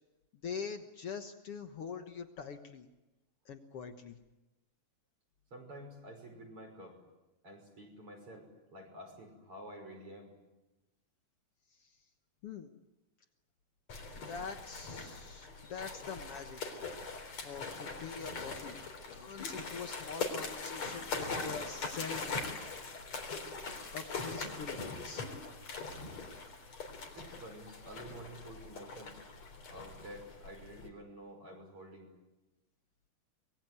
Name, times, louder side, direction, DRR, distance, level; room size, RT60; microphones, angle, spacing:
voice 1, 0.4-2.9 3.5-4.2 12.4-12.7 14.2-16.6 17.4-18.8 19.1-22.6 22.8-23.1 23.9-25.3, left 6 dB, 75° left, 7 dB, 1.3 m, -44 dB
voice 2, 5.5-7.0 7.4-10.3 27.1-29.2 29.7-32.1, right 1 dB, 35° right, 5 dB, 6.5 m, -50 dB
sound 1, 13.9-30.9, left 4 dB, 45° left, 4.8 m, -42 dB
25.5 x 22.5 x 9.5 m, 1.0 s
omnidirectional pair, 4.6 m